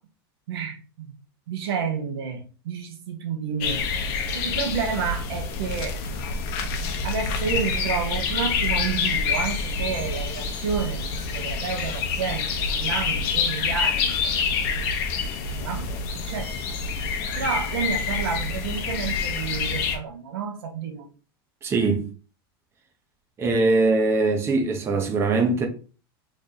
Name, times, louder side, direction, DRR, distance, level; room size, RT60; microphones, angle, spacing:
voice 1, 0.5-1.1 1.5-3.8 4.3-6.0 7.0-14.9 15.3-16.6 17.4-21.1, right 6 dB, 80° right, 0.8 m, -30 dB
sound 1, 3.6-20.0, left 5 dB, 50° left, 0.8 m, -27 dB
voice 2, 21.6-22.0 23.4-25.7, right 3 dB, 20° right, 0.6 m, -21 dB
3.1 x 2.6 x 3.8 m
supercardioid pair, 135°, 13 cm